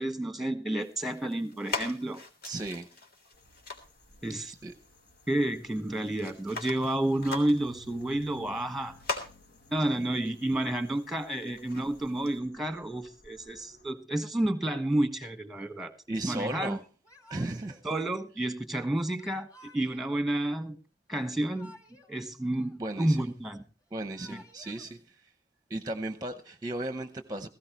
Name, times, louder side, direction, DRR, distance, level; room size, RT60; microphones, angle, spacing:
voice 1, 0.0-2.2 4.2-4.5 5.3-9.0 9.7-15.9 16.3-16.8 17.8-19.5 19.7-20.8 21.1-21.7 22.1-23.6 24.3-24.4, right 1 dB, ahead, 1.4 m, -30 dB
sound 1, 0.8-12.4, left 3 dB, 55° left, 3.4 m, -43 dB
voice 2, 2.4-2.9 4.5-4.7 9.9-10.4 16.1-16.8 17.3-17.8 22.8-23.3 23.9-25.3 25.7-27.5, right 1 dB, 20° right, 0.7 m, -36 dB
sound 2, 3.3-13.9, left 2 dB, 75° left, 1.7 m, -59 dB
Yell / Crying sobbing, 17.0-17.8 19.2-20.2 21.2-22.1 22.4-23.4 23.9-24.9, left 1 dB, 20° left, 3.1 m, -55 dB
17.5 x 15.5 x 3.1 m
head